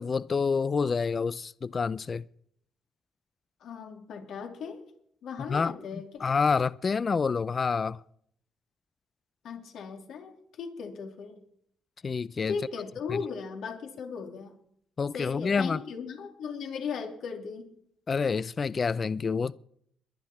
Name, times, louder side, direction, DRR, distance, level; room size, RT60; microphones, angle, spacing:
voice 1, 0.0-2.2 5.5-5.8 6.2-8.0 12.0-12.5 13.1-13.2 15.0-15.8 18.1-19.5, left 5 dB, 40° left, 0.4 m, -28 dB
voice 2, 3.6-4.8 5.2-6.3 9.4-11.4 12.5-14.6 15.1-17.7, left 6 dB, 75° left, 3.0 m, -37 dB
21.5 x 9.6 x 4.4 m
cardioid pair, 90°, 0 cm